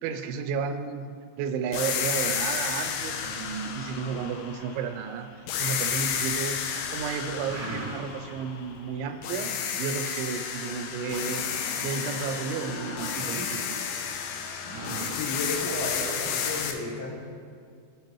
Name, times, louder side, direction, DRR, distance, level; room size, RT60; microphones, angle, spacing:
voice 1, 0.0-9.5 9.8-11.4 11.8-13.9, right 6 dB, 85° right, 6 dB, 3.0 m, -33 dB
sound 1, 1.7-5.0 5.5-8.8 9.2-16.7, left 7 dB, 90° left, 3.1 m, -32 dB
sound 2, 5.3-6.1 6.5-6.9 7.2-8.3 8.7-8.8 9.1-9.6 10.0-11.9 12.2-13.4 13.7-13.8 14.0-15.1, right 4 dB, 70° right, 1.0 m, -40 dB
sound 3, 11.0-15.1, left 1 dB, 45° left, 2.8 m, -42 dB
voice 2, 15.1-17.3, left 2 dB, 70° left, -7 dB, 2.8 m, -33 dB
17.0 x 5.9 x 3.0 m, 2.2 s
omnidirectional pair, 5.2 m